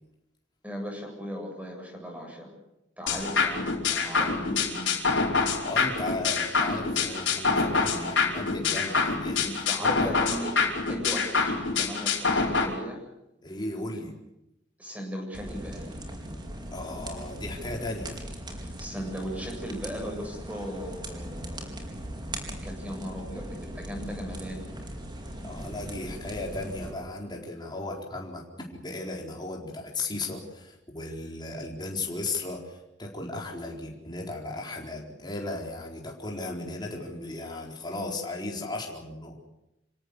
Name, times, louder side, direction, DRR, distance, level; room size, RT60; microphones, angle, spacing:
voice 1, 0.6-2.5 3.0-5.0 9.4-10.5 10.9-13.0 14.8-16.0 18.8-21.6 22.5-24.7, equal, 10° right, 1 dB, 7.8 m, -37 dB
sound 1, 3.1-12.7, left 4 dB, 70° left, 5.2 m, -26 dB
voice 2, 5.6-9.5 9.8-10.1 13.4-14.2 16.7-18.2 25.4-28.4 28.7-39.4, left 2 dB, 25° left, -1 dB, 4.3 m, -36 dB
sound 2, 15.3-26.9, right 1 dB, 25° right, 4.7 m, -39 dB
28.0 x 17.5 x 8.3 m, 0.89 s
head